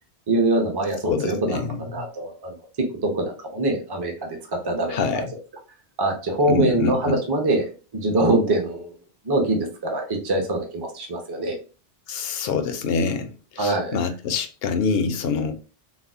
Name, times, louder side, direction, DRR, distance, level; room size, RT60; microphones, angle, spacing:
voice 1, 0.3-5.3 6.0-7.7 7.9-8.9 9.2-11.6 13.6-14.0, right 2 dB, 30° right, 0.6 m, -24 dB
voice 2, 1.1-2.0 4.9-5.3 6.5-7.1 12.1-15.5, left 5 dB, 70° left, 0.7 m, -25 dB
4.1 x 2.0 x 2.4 m
omnidirectional pair, 1.1 m